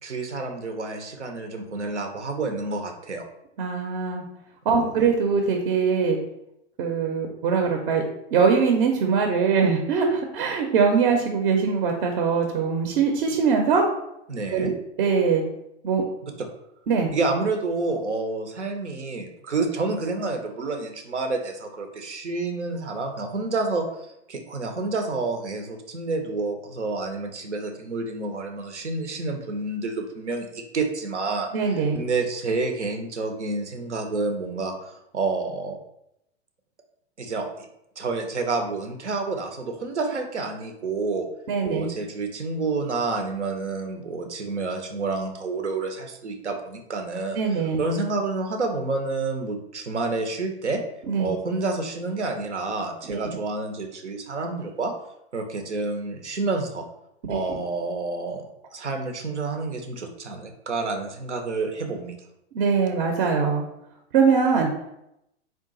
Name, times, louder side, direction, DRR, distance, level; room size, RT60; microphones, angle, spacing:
voice 1, 0.0-3.3 4.8-4.9 14.3-14.7 16.4-16.5 17.1-23.9 24.3-31.5 31.9-35.8 37.2-37.7 38.0-41.3 41.6-47.4 47.8-50.8 51.2-54.9 55.3-56.9 57.3-58.5 58.7-62.2, right 3 dB, 90° right, 4 dB, 0.7 m, -29 dB
voice 2, 3.6-4.2 4.7-6.2 6.8-8.0 8.3-13.9 14.5-14.7 15.0-15.4 15.8-16.1 16.9-17.2 31.5-32.0 41.5-41.9 47.3-47.8 51.1-51.3 53.1-53.4 57.3-57.6 62.5-63.6 64.1-64.7, right 5 dB, 50° right, 3 dB, 0.7 m, -22 dB
3.7 x 2.5 x 3.8 m, 0.81 s
hypercardioid pair, 105°, 34 cm